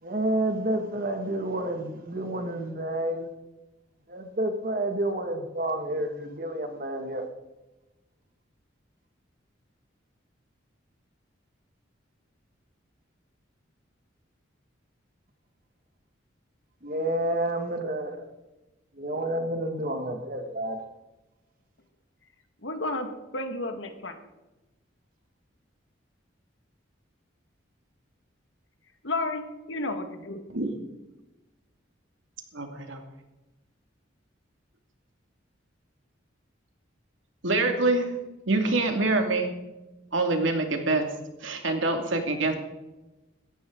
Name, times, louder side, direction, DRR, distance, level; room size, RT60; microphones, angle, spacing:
voice 1, 0.0-3.3 4.1-7.2 16.8-18.3 18.9-20.9, right 1 dB, 45° right, 5 dB, 2.0 m, -29 dB
voice 2, 22.6-24.2 29.0-30.4, left 2 dB, 75° left, 6 dB, 1.9 m, -32 dB
voice 3, 32.5-33.0 37.4-38.1 38.5-39.5 40.1-41.1 41.4-42.5, right 2 dB, 85° right, 4 dB, 2.5 m, -25 dB
17.5 x 13.5 x 4.0 m, 1.0 s
head